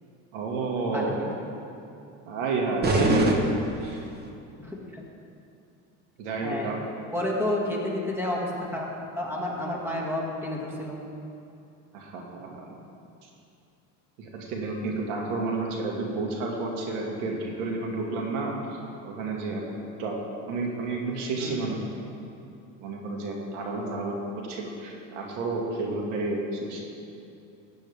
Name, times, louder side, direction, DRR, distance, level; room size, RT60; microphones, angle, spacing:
voice 1, 0.3-1.2 2.3-3.5 3.8-4.0 6.2-6.8 11.9-12.8 13.2-13.3 14.2-18.6 19.0-19.6 20.0-20.2 20.5-21.8 22.3-22.4 22.8-26.8, right 3 dB, 85° right, 0 dB, 2.1 m, -30 dB
voice 2, 0.9-1.3 4.6-4.8 6.4-6.7 7.1-8.9 9.2-11.0 21.4-21.8, left 1 dB, 5° right, -3 dB, 2.1 m, -30 dB
sound 1, 2.8-4.3, right 1 dB, 25° right, 1.2 m, -25 dB
15.5 x 9.1 x 3.5 m, 2.6 s
supercardioid pair, 110°, 37 cm